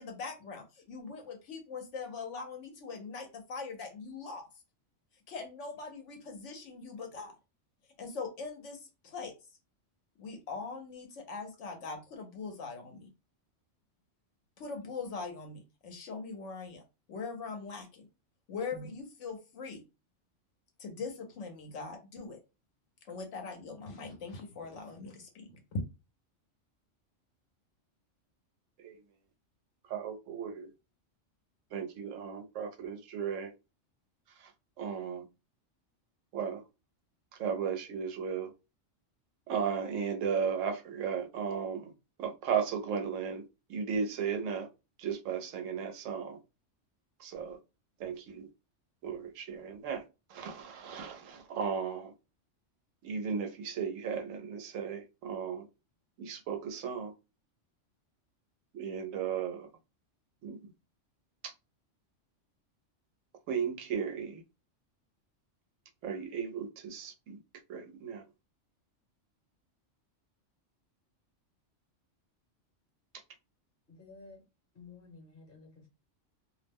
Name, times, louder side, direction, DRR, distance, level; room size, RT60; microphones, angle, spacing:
voice 1, 0.0-4.4 5.3-7.3 8.0-9.3 10.2-13.1 14.6-16.8 17.1-18.1 18.5-19.8 20.8-22.4 23.1-25.8, left 4 dB, 75° left, 1.0 m, -41 dB
voice 2, 29.9-30.7 31.7-33.5 34.4-34.5 34.8-35.2 36.3-36.6 37.4-38.5 39.5-41.9 42.2-43.4 43.7-44.7 45.0-46.4 47.2-47.6 48.0-48.5 49.0-50.0 50.3-52.1 53.0-55.7 56.2-57.1 58.7-59.7 60.4-60.7 61.4-61.5 63.5-64.4 66.0-67.4 67.7-68.2, right 7 dB, 90° right, 1.0 m, -35 dB
voice 3, 73.9-74.4 74.7-75.9, left 4 dB, 50° left, 1.0 m, -53 dB
2.6 x 2.0 x 3.4 m
omnidirectional pair, 1.3 m